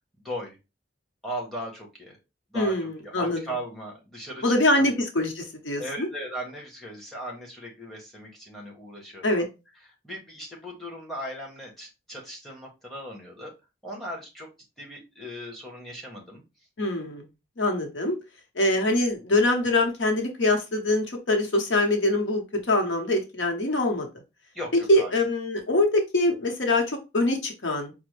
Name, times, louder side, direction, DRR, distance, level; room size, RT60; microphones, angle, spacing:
voice 1, 0.2-0.6 1.2-2.2 2.5-4.9 5.8-9.4 10.0-13.5 13.8-14.5 14.8-16.4 24.5-25.1, equal, ahead, -2 dB, 1.0 m, -38 dB
voice 2, 2.5-3.4 4.4-6.1 9.2-9.4 16.8-17.3 17.6-18.2 18.6-24.1 24.9-27.9, left 1 dB, 85° left, 3 dB, 0.9 m, -24 dB
5.0 x 2.1 x 3.1 m, 0.26 s
head